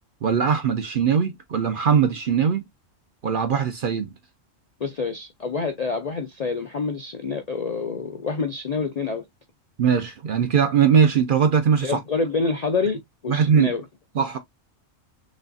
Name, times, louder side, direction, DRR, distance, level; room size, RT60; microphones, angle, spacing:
voice 1, 0.2-2.6 3.2-4.1 9.8-12.0 13.3-13.7 14.2-14.4, right 7 dB, 55° right, 0.6 m, -20 dB
voice 2, 4.8-9.2 11.8-13.8, left 4 dB, 55° left, 0.4 m, -27 dB
6.2 x 2.3 x 2.5 m
omnidirectional pair, 1.3 m